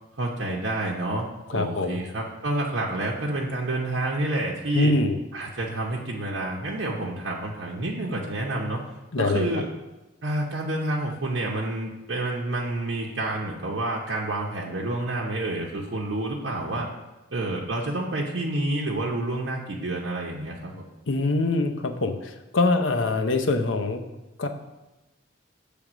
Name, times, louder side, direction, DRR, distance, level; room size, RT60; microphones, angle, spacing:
voice 1, 0.2-1.3 1.5-4.9 5.3-8.8 9.2-9.7 10.2-16.9 17.3-20.9, right 2 dB, 75° right, -3 dB, 0.8 m, -29 dB
voice 2, 1.5-2.0 4.7-5.2 9.1-9.4 21.1-24.0 24.4-24.5, left 2 dB, 80° left, 6 dB, 0.7 m, -24 dB
7.6 x 3.5 x 6.0 m, 1.0 s
head